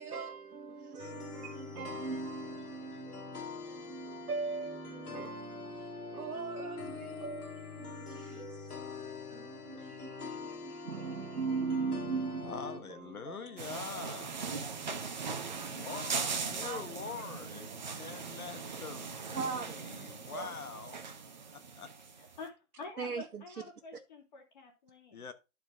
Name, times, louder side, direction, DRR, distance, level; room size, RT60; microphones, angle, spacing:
voice 1, 0.0-13.7 15.5-15.9 16.6-16.9 19.3-20.5 23.0-23.4, right 4 dB, 90° right, 1.3 m, -40 dB
sound 1, 1.0-12.8, left 4 dB, 90° left, 2.3 m, -44 dB
voice 2, 12.4-14.5 15.8-21.0 21.5-21.9 25.1-25.3, left 5 dB, 75° left, 1.5 m, -44 dB
sound 2, 13.6-22.4, right 5 dB, 30° right, 0.8 m, -40 dB
voice 3, 15.6-16.5 22.2-25.3, left 3 dB, 30° left, 2.2 m, -49 dB
12.0 x 4.5 x 3.6 m
hypercardioid pair, 160°, 44 cm